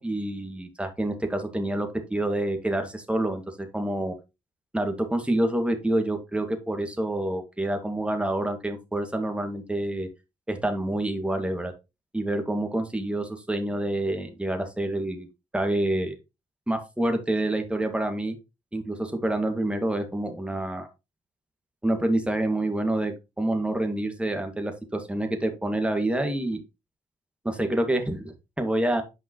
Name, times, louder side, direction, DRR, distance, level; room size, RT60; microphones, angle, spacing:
voice 1, 0.0-4.1 4.7-10.1 10.5-11.7 12.1-15.3 15.5-16.1 16.7-18.3 18.7-20.9 21.8-26.6 27.4-29.0, right 1 dB, 10° right, 5 dB, 2.0 m, -27 dB
9.0 x 5.2 x 3.0 m, 0.25 s
hypercardioid pair, 45°, 14 cm